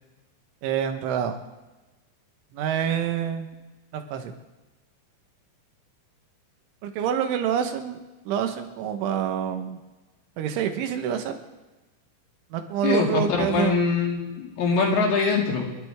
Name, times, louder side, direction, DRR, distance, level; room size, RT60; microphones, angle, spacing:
voice 1, 0.6-1.4 2.5-3.5 3.9-4.3 6.8-8.0 8.3-9.8 10.4-11.4 12.5-13.8, right 8 dB, 75° right, 6 dB, 3.5 m, -27 dB
voice 2, 12.8-15.6, left 4 dB, 55° left, -1 dB, 4.1 m, -23 dB
30.0 x 11.5 x 3.7 m, 1.1 s
omnidirectional pair, 6.0 m